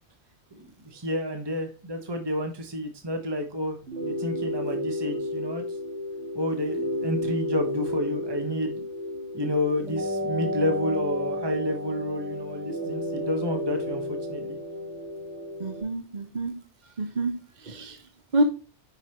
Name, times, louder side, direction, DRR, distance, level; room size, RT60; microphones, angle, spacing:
voice 1, 0.5-5.6 6.3-8.8 9.3-14.6, left 1 dB, 20° right, 5 dB, 1.3 m, -30 dB
sound 1, 3.8-15.8, left 1 dB, 75° right, 3.8 m, -32 dB
voice 2, 15.6-16.6 17.0-18.0 18.3-18.4, right 1 dB, 40° right, 5 dB, 1.1 m, -28 dB
9.9 x 5.5 x 3.0 m, 0.34 s
omnidirectional pair, 1.2 m